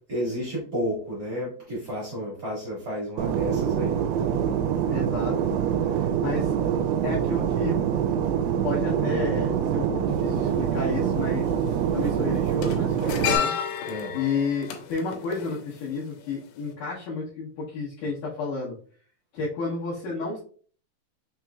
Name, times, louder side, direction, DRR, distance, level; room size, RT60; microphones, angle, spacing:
voice 1, 0.1-4.2 13.9-14.2, equal, 45° right, -6 dB, 1.3 m, -32 dB
Fixed-wing aircraft airplane, 3.2-13.4, right 8 dB, 85° right, 2.5 m, -25 dB
voice 2, 4.9-6.7 7.0-7.8 8.1-8.2 8.6-11.5 11.9-13.5 14.1-18.8 19.3-20.4, left 4 dB, 70° left, -8 dB, 2.1 m, -31 dB
sound 1, 10.1-10.2 11.4-11.7 12.0-16.3 16.5-16.7, left 8 dB, 85° left, 2.8 m, -31 dB
6.0 x 3.0 x 2.3 m, 0.43 s
omnidirectional pair, 4.7 m